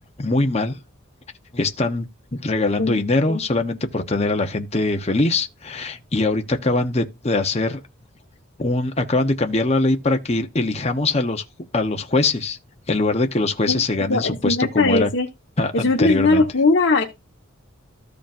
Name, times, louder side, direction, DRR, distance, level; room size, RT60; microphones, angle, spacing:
voice 1, 0.2-0.8 1.5-7.8 8.6-11.4 11.7-12.6 12.9-15.1 15.6-16.4, left 2 dB, 30° left, 0.9 m, -22 dB
voice 2, 14.1-15.3 15.7-17.0, left 3 dB, 60° left, 1.3 m, -19 dB
14.5 x 5.0 x 2.5 m
head